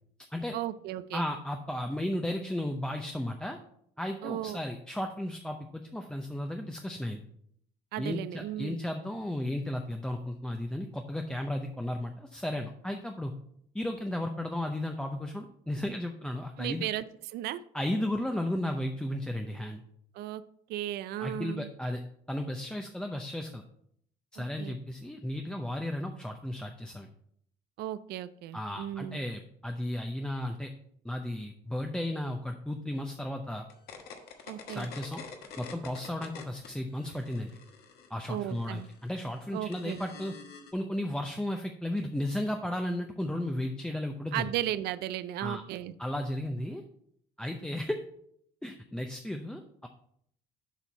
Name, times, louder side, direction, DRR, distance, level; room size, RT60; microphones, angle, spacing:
voice 1, 0.5-1.3 4.2-4.6 7.9-8.8 16.6-17.6 20.1-20.4 20.7-21.7 24.4-24.7 27.8-29.2 34.5-34.9 38.3-38.9 39.5-40.0 44.3-46.0, right 12 dB, 70° right, 14 dB, 0.4 m, -35 dB
voice 2, 1.1-3.6 4.0-7.2 8.0-13.3 13.7-16.8 17.7-19.8 21.2-22.0 22.3-23.6 24.3-27.1 28.5-30.7 31.0-33.7 34.7-35.2 35.6-37.6 38.1-40.3 40.7-44.4 45.4-45.6 46.0-46.8 47.4-48.0 48.6-49.9, left 1 dB, 5° left, 4 dB, 0.6 m, -34 dB
sound 1, 33.7-36.7 37.0-40.7, left 6 dB, 70° left, 1.2 m, -47 dB
7.1 x 4.4 x 5.2 m, 0.69 s
cardioid pair, 110°, 17 cm